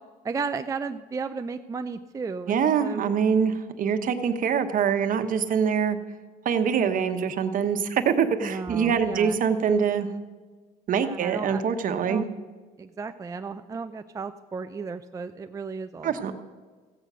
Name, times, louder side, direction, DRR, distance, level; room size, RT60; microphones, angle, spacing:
voice 1, 0.2-3.1 6.8-7.3 8.4-9.4 10.9-11.6 12.0-12.3 12.8-16.3, right 4 dB, 20° right, 7 dB, 0.4 m, -34 dB
voice 2, 2.5-6.0 6.4-10.1 10.9-12.3 16.0-16.3, right 7 dB, 55° right, 7 dB, 1.1 m, -24 dB
15.5 x 8.1 x 6.2 m, 1.4 s
cardioid pair, 110°, 17 cm